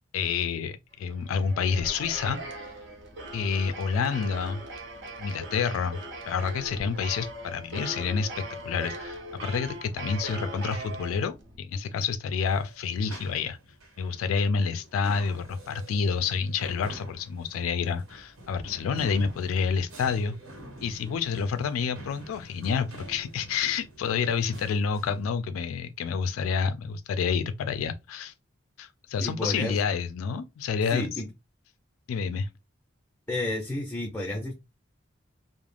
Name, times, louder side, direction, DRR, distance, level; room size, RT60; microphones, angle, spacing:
voice 1, 0.1-2.4 3.3-4.6 5.2-6.0 6.3-13.6 14.0-20.4 20.8-28.3 28.8-31.1 32.1-32.5, left 6 dB, 85° left, 0.3 m, -29 dB
sound 1, 1.1-11.6, right 1 dB, 60° right, 0.6 m, -40 dB
sound 2, 12.5-25.3, right 1 dB, 85° right, 1.0 m, -46 dB
voice 2, 29.2-29.8 30.9-31.3 33.3-34.5, left 1 dB, 10° left, 0.5 m, -31 dB
2.3 x 2.0 x 3.2 m
head